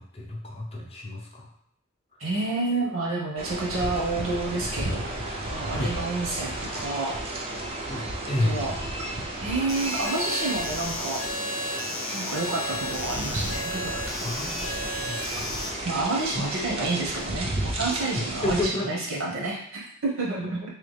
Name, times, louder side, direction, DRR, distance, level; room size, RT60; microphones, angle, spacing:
voice 1, 0.0-1.5 5.7-5.9 7.9-8.8 14.2-14.7 15.0-15.8 16.3-16.5 18.4-19.0, left 1 dB, 30° left, -1 dB, 0.6 m, -31 dB
voice 2, 2.2-5.1 5.5-7.1 8.4-8.7 9.4-11.2 12.1-14.3 15.8-17.5 17.8-20.6, right 2 dB, 75° right, -3 dB, 1.1 m, -29 dB
sound 1, 3.4-18.7, right 1 dB, 30° right, 0.5 m, -33 dB
sound 2, 9.7-15.7, left 1 dB, 85° left, 0.7 m, -33 dB
3.3 x 2.4 x 3.3 m, 0.70 s
head